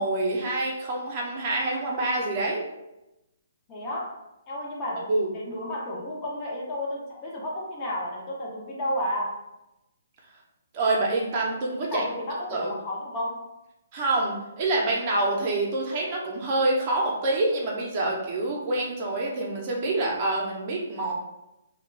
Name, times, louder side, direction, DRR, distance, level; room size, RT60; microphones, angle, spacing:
voice 1, 0.0-2.6 5.1-5.3 10.7-12.0 12.5-12.7 13.9-21.1, right 2 dB, 40° right, -2 dB, 0.6 m, -26 dB
voice 2, 3.7-4.2 4.5-9.4 11.8-13.5, left 1 dB, 25° left, -3 dB, 0.6 m, -32 dB
2.2 x 2.2 x 3.2 m, 0.92 s
figure-of-eight pair, 135°, 0 cm